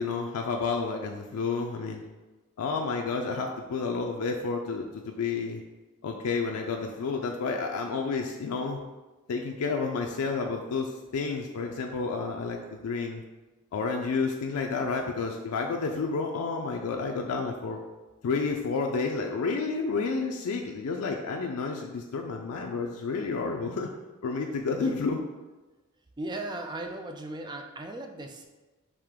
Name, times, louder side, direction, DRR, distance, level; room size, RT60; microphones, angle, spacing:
voice 1, 0.0-2.0 2.6-5.6 6.0-8.8 9.3-13.2 13.7-17.8 18.2-23.9 24.2-25.2, left 4 dB, 90° left, 1 dB, 0.4 m, -30 dB
voice 2, 26.2-28.5, right 2 dB, 20° right, 4 dB, 0.3 m, -37 dB
4.9 x 2.8 x 3.6 m, 1.2 s
head